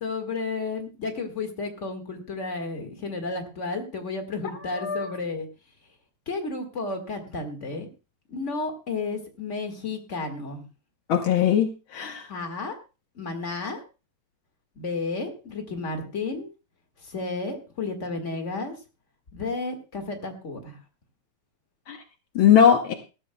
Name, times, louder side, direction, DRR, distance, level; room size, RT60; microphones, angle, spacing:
voice 1, 0.0-5.5 6.3-7.9 8.3-10.6 12.3-12.8 13.1-13.8 14.7-16.5 17.0-18.7 19.3-20.8, left 3 dB, 30° left, 5 dB, 1.4 m, -32 dB
voice 2, 4.7-5.1 11.1-12.3 21.9-22.0 22.3-22.9, left 9 dB, 85° left, 6 dB, 1.1 m, -20 dB
19.5 x 13.5 x 2.2 m, 0.31 s
omnidirectional pair, 3.5 m